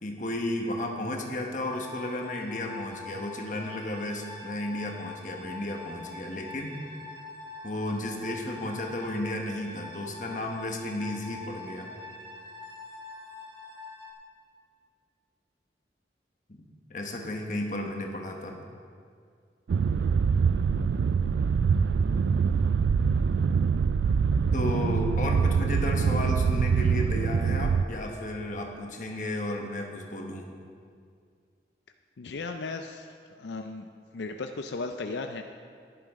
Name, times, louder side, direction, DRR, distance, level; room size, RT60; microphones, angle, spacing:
voice 1, 0.0-6.8 7.6-11.9 16.5-16.6 16.9-18.6 24.5-30.5, left 1 dB, 45° left, 1 dB, 1.2 m, -33 dB
sound 1, 1.6-14.1, left 3 dB, 25° right, 1.6 m, -44 dB
sound 2, 19.7-27.9, right 5 dB, 80° right, 0.3 m, -24 dB
voice 2, 32.2-33.1 33.4-33.9 34.1-35.4, left 3 dB, 80° left, 6 dB, 0.5 m, -35 dB
13.0 x 11.0 x 3.7 m, 2.2 s
head